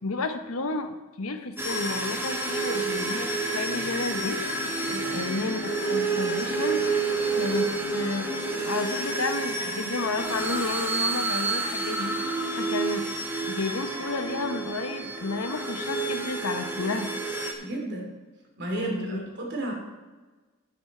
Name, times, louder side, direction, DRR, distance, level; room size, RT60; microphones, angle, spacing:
voice 1, 0.0-4.4 5.1-6.8 7.3-8.3 8.6-13.0 13.5-17.1 18.7-19.2, left 3 dB, 75° left, 8 dB, 1.0 m, -31 dB
sound 1, 1.4-1.5 2.0-14.0, left 4 dB, 45° left, 1.9 m, -39 dB
sound 2, 1.6-17.5, right 3 dB, 10° right, 1.4 m, -29 dB
voice 2, 17.6-18.1 18.6-19.7, right 2 dB, 55° right, 0 dB, 3.2 m, -32 dB
12.0 x 9.6 x 4.5 m, 1.2 s
head